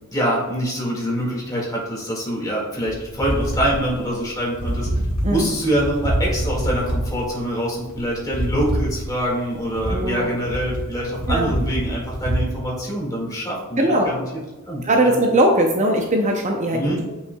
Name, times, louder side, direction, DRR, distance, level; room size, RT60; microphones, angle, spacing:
voice 1, 0.1-4.9 5.3-14.2 14.7-15.2 16.7-17.0, equal, 15° left, -4 dB, 1.8 m, -25 dB
sound 1, 2.8-12.4, right 1 dB, 70° left, 1.7 m, -26 dB
voice 2, 9.9-10.3 11.3-11.5 13.8-14.1 14.8-17.1, right 1 dB, 30° right, 2 dB, 0.5 m, -20 dB
8.3 x 5.5 x 2.2 m, 1.1 s
head